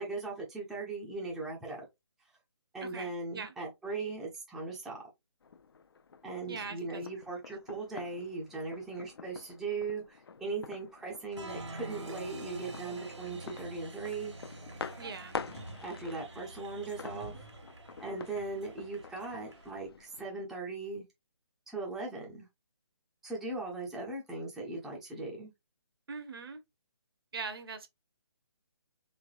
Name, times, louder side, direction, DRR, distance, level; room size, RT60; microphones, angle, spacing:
voice 1, 0.0-1.8 2.7-5.0 6.2-14.3 15.8-17.4 18.0-21.0 21.7-22.5 23.2-25.5, right 3 dB, ahead, 0.5 m, -39 dB
voice 2, 2.8-3.5 6.5-7.0 15.0-15.4 26.1-26.6 27.3-27.9, right 4 dB, 55° right, 0.7 m, -41 dB
sound 1, 5.4-20.3, left 6 dB, 55° left, 0.4 m, -48 dB
Applause, 11.3-19.7, right 2 dB, 80° right, 1.3 m, -46 dB
3.2 x 3.2 x 2.3 m
figure-of-eight pair, 145°, 15 cm